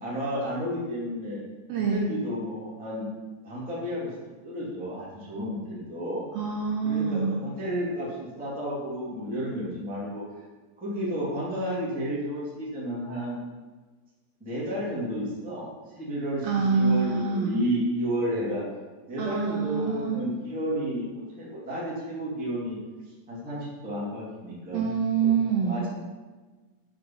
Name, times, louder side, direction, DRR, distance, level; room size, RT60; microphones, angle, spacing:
voice 1, 0.0-1.4 1.9-3.1 3.4-4.1 4.4-6.3 6.8-10.2 10.8-13.4 14.4-18.6 19.1-22.8 23.1-24.8 25.2-25.3 25.6-25.9, equal, 5° right, -7 dB, 1.0 m, -32 dB
voice 2, 1.7-2.1 6.3-7.3 16.4-17.6 19.2-20.2 24.7-25.8, right 5 dB, 80° right, -1 dB, 2.2 m, -26 dB
6.4 x 5.4 x 5.7 m, 1.3 s
omnidirectional pair, 4.7 m